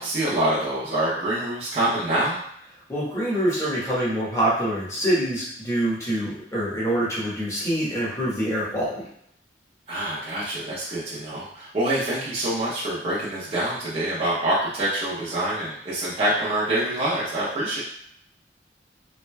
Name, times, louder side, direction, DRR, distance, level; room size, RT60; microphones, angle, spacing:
voice 1, 0.0-2.4 9.9-17.8, right 1 dB, 35° right, -9 dB, 0.7 m, -26 dB
voice 2, 2.9-9.0, right 1 dB, 15° left, -8 dB, 1.2 m, -25 dB
3.6 x 3.2 x 2.2 m, 0.72 s
head